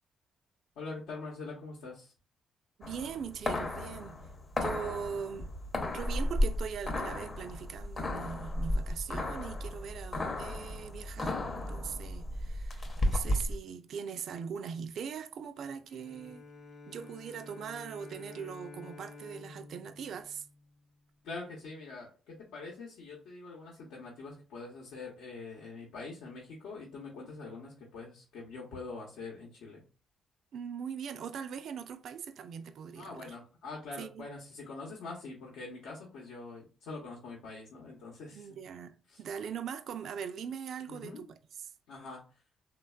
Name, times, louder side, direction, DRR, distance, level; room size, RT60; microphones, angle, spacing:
voice 1, 0.8-2.1 21.2-29.8 33.0-38.5 39.1-39.2 40.9-41.3 41.9-42.2, left 3 dB, 90° left, 0.8 m, -44 dB
sound 1, 2.8-13.6, left 1 dB, 35° left, 0.6 m, -34 dB
voice 2, 2.8-4.2 4.6-5.5 5.8-16.5 16.9-20.5 30.5-33.3 34.0-34.3 38.3-41.7, right 7 dB, 65° right, 0.3 m, -41 dB
Bowed string instrument, 15.9-21.1, left 3 dB, 60° left, 0.8 m, -51 dB
3.2 x 2.2 x 2.2 m
cardioid pair, 90°, 0 cm